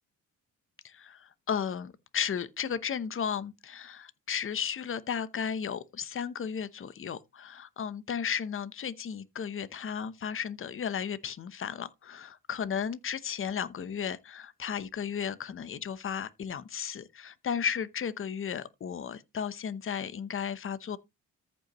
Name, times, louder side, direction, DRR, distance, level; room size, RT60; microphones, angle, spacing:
voice 1, 0.8-21.0, left 7 dB, 40° left, 0.9 m, -34 dB
14.0 x 5.5 x 3.0 m
cardioid pair, 90°, 34 cm